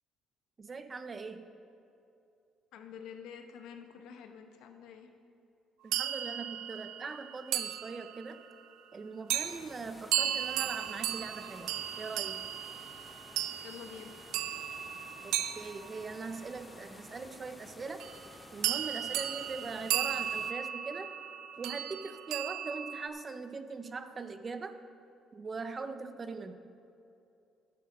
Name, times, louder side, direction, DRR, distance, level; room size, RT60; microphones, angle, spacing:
voice 1, 0.6-1.5 5.8-8.5 8.9-12.5 15.2-18.1 18.5-21.1 21.6-24.8 25.3-26.6, right 4 dB, 30° right, 10 dB, 0.5 m, -41 dB
voice 2, 2.7-5.1 13.6-14.2, left 7 dB, 85° left, 6 dB, 0.9 m, -48 dB
sound 1, 5.9-8.4 9.3-9.6 10.1-16.5 18.0-18.3 18.6-23.1, right 11 dB, 85° right, 0.4 m, -35 dB
sound 2, 9.3-20.5, left 2 dB, 15° left, 0.6 m, -53 dB
11.0 x 7.6 x 5.4 m, 2.6 s
cardioid pair, 125°, 0 cm